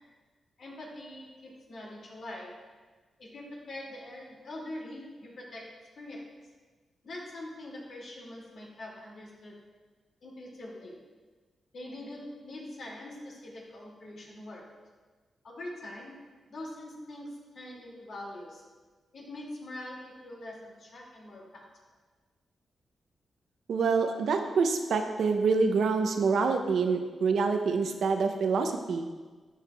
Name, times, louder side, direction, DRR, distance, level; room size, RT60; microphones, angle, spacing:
voice 1, 0.6-2.6 3.2-6.3 7.0-9.6 10.2-10.9 11.7-14.6 15.4-16.2 16.5-18.6 19.1-21.6, left 1 dB, 70° left, -3 dB, 2.1 m, -43 dB
voice 2, 23.7-29.1, right 4 dB, 80° right, 6 dB, 0.5 m, -26 dB
12.5 x 4.9 x 2.2 m, 1.3 s
cardioid pair, 55°, 0 cm